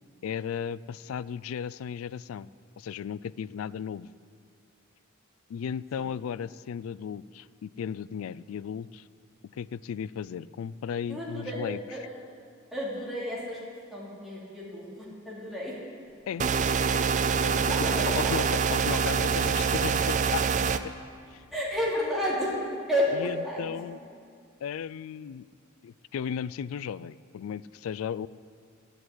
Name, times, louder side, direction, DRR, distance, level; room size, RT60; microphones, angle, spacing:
voice 1, 0.2-2.5 2.8-4.1 5.5-9.0 9.5-11.8 16.3-16.5 17.4-17.9 18.1-20.4 20.8-20.9 21.3-21.4 23.2-24.0 24.6-25.5 25.8-28.3, left 7 dB, 80° left, 19 dB, 0.3 m, -35 dB
voice 2, 11.1-11.6 11.9-12.0 12.7-13.6 13.9-15.8 17.7-18.4 21.5-22.6 22.9-23.7, equal, ahead, -7 dB, 3.0 m, -31 dB
sound 1, 16.4-20.8, right 5 dB, 35° right, 0.4 m, -25 dB
11.5 x 8.0 x 9.9 m, 2.3 s
head